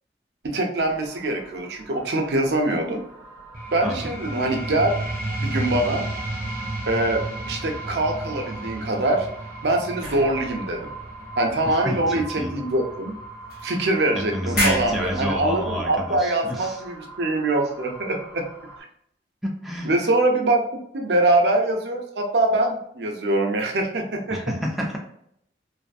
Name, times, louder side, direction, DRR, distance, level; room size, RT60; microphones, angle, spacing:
voice 1, 0.4-3.0 3.7-5.0 5.4-6.0 6.9-9.3 9.6-10.9 11.4-13.1 13.6-18.4 19.8-20.6 20.9-24.4, right 2 dB, 70° right, 2 dB, 0.5 m, -23 dB
sound 1, 0.8-18.8, right 3 dB, 25° right, 0.7 m, -42 dB
sound 2, 3.5-14.6, right 1 dB, 55° right, 0.9 m, -33 dB
voice 2, 3.8-4.2 11.7-12.5 14.1-16.8 19.4-19.9 24.3-25.0, equal, ahead, -2 dB, 0.3 m, -29 dB
sound 3, 10.0-12.0 12.7-12.8 13.5-14.1 14.4-16.0, equal, 55° left, 0.8 m, -31 dB
2.6 x 2.5 x 2.4 m, 0.71 s
head